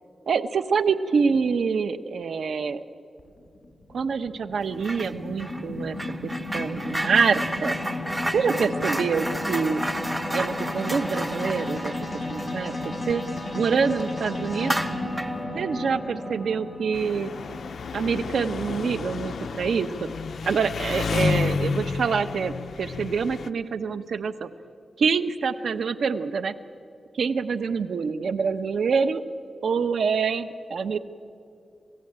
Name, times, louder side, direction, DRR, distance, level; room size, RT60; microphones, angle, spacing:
voice 1, 0.3-2.8 3.9-6.0 6.5-7.8 8.3-9.8 10.3-11.9 12.3-13.2 13.5-14.8 15.5-17.3 17.9-20.1 20.5-24.5 25.0-26.5 27.1-29.2 29.6-31.0, right 5 dB, 75° right, 11 dB, 0.9 m, -26 dB
sound 1, 3.2-19.6, left 2 dB, 15° left, 5.6 m, -34 dB
sound 2, 4.8-5.1 5.4-13.6 13.9-14.1 14.6-15.4, right 1 dB, 10° right, 1.0 m, -32 dB
Engine, 16.9-23.5, left 5 dB, 65° left, 0.6 m, -30 dB
28.0 x 16.5 x 8.8 m, 2.6 s
wide cardioid pair, 115°, 0 cm